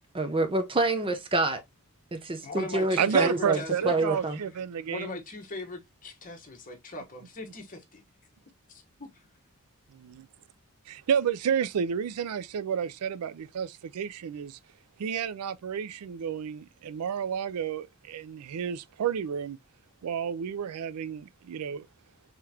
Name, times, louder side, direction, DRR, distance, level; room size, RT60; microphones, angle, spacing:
voice 1, 0.1-1.6 2.1-3.6 3.8-4.4, right 2 dB, 25° right, 0.7 m, -27 dB
voice 2, 2.4-3.9 4.8-8.0 8.7-9.1, left 2 dB, 40° left, 1.0 m, -39 dB
voice 3, 3.0-5.2 9.9-10.3 10.9-14.6 15.0-19.6 20.0-21.9, right 7 dB, 80° right, 0.4 m, -30 dB
3.8 x 3.1 x 2.7 m
head